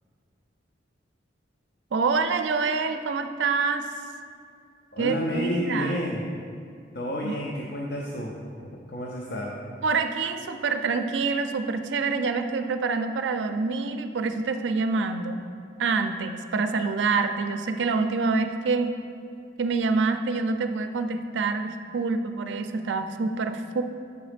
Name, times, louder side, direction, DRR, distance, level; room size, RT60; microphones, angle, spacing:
voice 1, 1.9-3.9 5.0-6.2 7.2-7.4 9.8-15.5 15.8-19.0 19.6-23.8, right 4 dB, 75° right, 8 dB, 0.4 m, -26 dB
voice 2, 4.9-6.2 6.9-8.3 8.6-9.6, equal, 60° left, -3 dB, 0.6 m, -30 dB
6.9 x 3.9 x 5.0 m, 2.3 s
head